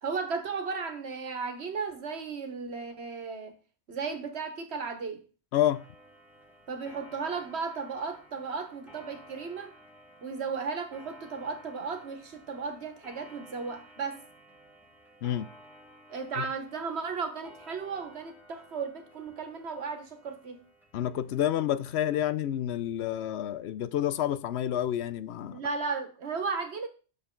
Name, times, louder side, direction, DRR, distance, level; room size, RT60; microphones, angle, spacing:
voice 1, 0.0-3.5 3.9-5.2 6.7-9.8 10.2-14.2 16.1-20.6 25.5-26.9, right 5 dB, 80° right, 1.5 m, -35 dB
voice 2, 5.5-5.8 15.2-15.5 16.4-16.5 20.9-25.6, left 11 dB, 85° left, 0.9 m, -29 dB
Clock, 5.7-21.8, equal, ahead, 1.7 m, -55 dB
8.1 x 6.6 x 3.8 m
omnidirectional pair, 1.1 m